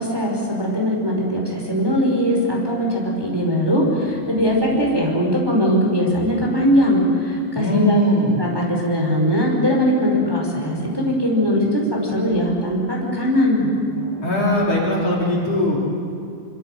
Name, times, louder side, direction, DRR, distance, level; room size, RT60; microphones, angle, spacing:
voice 1, 0.0-8.0 8.4-13.7, equal, 5° right, -1 dB, 4.7 m, -20 dB
sound 1, 2.3-3.0 4.0-4.6 6.0-6.7 8.0-8.8 10.0-10.8 11.6-12.4 13.4-14.6, equal, 30° right, 7.1 m, -38 dB
voice 2, 7.6-8.4 14.2-15.8, left 1 dB, 50° left, -4 dB, 4.9 m, -20 dB
26.5 x 25.5 x 7.9 m, 2.4 s
omnidirectional pair, 3.7 m